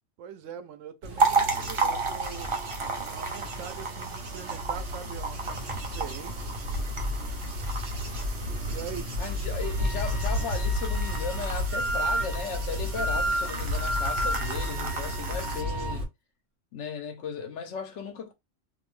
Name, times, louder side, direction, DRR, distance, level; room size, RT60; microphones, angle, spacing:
voice 1, 0.2-2.6 3.0-6.5 8.6-9.1, right 8 dB, 85° right, 0.9 m, -42 dB
Bird / Insect / Wind, 1.0-16.0, left 1 dB, 55° right, 0.9 m, -33 dB
sound 1, 1.2-15.6, right 4 dB, 40° right, 0.4 m, -33 dB
voice 2, 9.2-16.1 16.7-18.3, left 5 dB, 70° left, 0.9 m, -36 dB
Wind instrument woodwind instrument, 9.6-16.0, right 1 dB, 25° right, 0.9 m, -33 dB
2.6 x 2.1 x 3.0 m
omnidirectional pair, 1.3 m